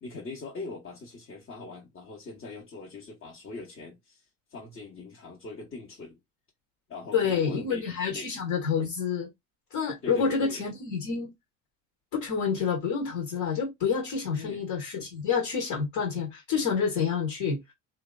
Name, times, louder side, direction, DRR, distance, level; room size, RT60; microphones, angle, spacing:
voice 1, 0.0-4.2 4.5-6.2 6.9-7.8 8.1-8.3 10.0-10.6 14.3-14.6, left 3 dB, 30° left, 1.0 m, -41 dB
voice 2, 7.1-9.3 9.7-11.3 12.1-17.6, left 6 dB, 55° left, 1.3 m, -28 dB
2.7 x 2.4 x 2.3 m
hypercardioid pair, 90°, 42 cm